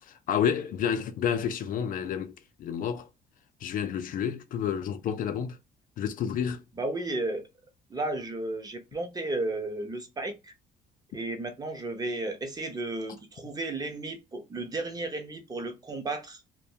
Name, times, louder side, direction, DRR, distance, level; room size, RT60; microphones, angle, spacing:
voice 1, 0.0-3.1 3.6-5.6 6.0-6.6, left 8 dB, 55° left, 0.4 m, -30 dB
voice 2, 6.8-7.5 7.9-10.5 11.1-16.4, right 2 dB, 20° right, 0.7 m, -33 dB
2.2 x 2.2 x 2.7 m
cardioid pair, 110°, 17 cm